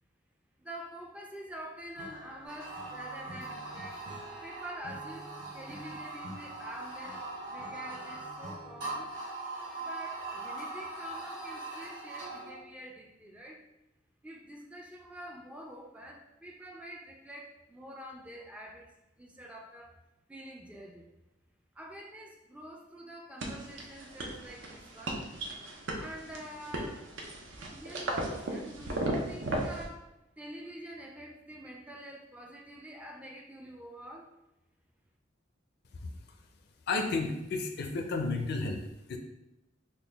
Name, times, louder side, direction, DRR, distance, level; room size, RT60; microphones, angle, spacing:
voice 1, 0.6-4.0 4.4-9.2 9.8-13.7 14.2-20.0 20.3-21.1 21.7-25.3 25.9-27.1 27.7-34.4, equal, 5° right, 1 dB, 0.3 m, -47 dB
Acoustic guitar / Strum, 2.0-9.2, right 1 dB, 45° right, 0.6 m, -50 dB
sound 1, 2.4-12.6, right 3 dB, 65° right, 1.4 m, -41 dB
sound 2, 23.4-29.9, right 1 dB, 85° right, 0.6 m, -36 dB
voice 2, 36.9-39.2, left 3 dB, 60° left, 5 dB, 0.4 m, -32 dB
3.7 x 2.2 x 3.3 m, 0.90 s
head